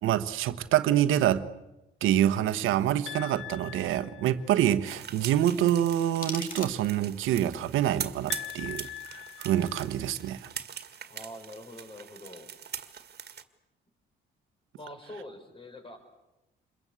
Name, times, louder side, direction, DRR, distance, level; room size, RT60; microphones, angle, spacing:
voice 1, 0.0-1.4 2.0-8.9 9.4-10.5, right 11 dB, 90° right, 1.3 m, -26 dB
sound 1, 3.1-4.7 8.3-10.3, left 13 dB, 75° left, 1.0 m, -42 dB
sound 2, 4.8-13.4, right 8 dB, 55° right, 2.0 m, -42 dB
sound 3, 5.8-7.2, left 4 dB, 45° left, 3.4 m, -41 dB
voice 2, 11.1-12.5 14.8-16.0, left 1 dB, 25° left, 5.9 m, -44 dB
28.0 x 22.0 x 8.3 m
cardioid pair, 90°, 20 cm